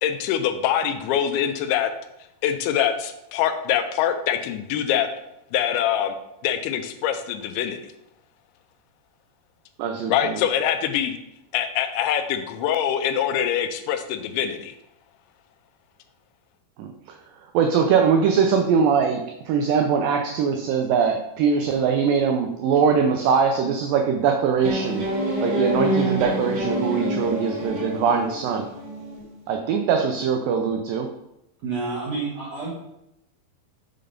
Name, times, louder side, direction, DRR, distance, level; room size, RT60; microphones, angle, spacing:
voice 1, 0.0-1.9 2.4-5.1 5.5-6.1 6.4-7.8 10.1-11.2 11.5-14.7, left 9 dB, 85° left, 8 dB, 2.5 m, -24 dB
voice 2, 9.8-10.4 16.8-17.2 17.5-25.1 25.4-28.7 29.5-31.2, right 6 dB, 90° right, 4 dB, 1.9 m, -22 dB
sound 1, 24.6-29.3, right 1 dB, 45° right, 2.3 m, -27 dB
voice 3, 31.6-32.7, right 4 dB, 70° right, -5 dB, 1.6 m, -29 dB
6.6 x 3.9 x 5.0 m, 0.83 s
omnidirectional pair, 4.6 m